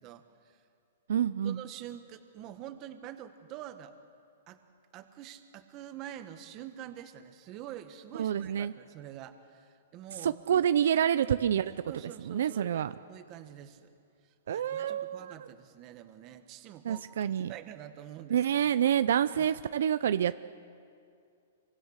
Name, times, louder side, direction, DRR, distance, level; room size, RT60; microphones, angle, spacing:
voice 1, 0.0-0.6 1.4-3.9 4.5-4.6 4.9-10.6 11.9-13.9 14.5-18.4 19.3-19.5, right 11 dB, 25° right, 8 dB, 1.5 m, -46 dB
voice 2, 1.1-1.6 8.1-8.7 10.1-11.7 12.2-12.9 14.5-15.5 16.8-17.5 18.3-20.4, right 9 dB, 70° right, 13 dB, 0.6 m, -28 dB
26.5 x 24.0 x 6.5 m, 2.4 s
hypercardioid pair, 165°, 0 cm